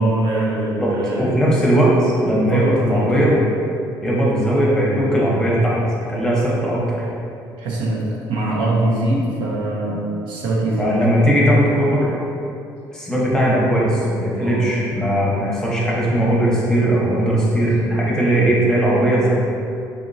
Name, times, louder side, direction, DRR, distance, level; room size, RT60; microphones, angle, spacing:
voice 1, 0.0-1.3 2.2-3.2 7.6-11.0 14.4-14.6, right 1 dB, 80° right, -4 dB, 0.7 m, -22 dB
voice 2, 1.2-3.3 4.0-5.8 6.1-7.1 10.8-12.1 12.9-19.3, right 1 dB, 10° left, -6 dB, 0.8 m, -18 dB
3.6 x 2.8 x 2.6 m, 2.6 s
cardioid pair, 100°, 8 cm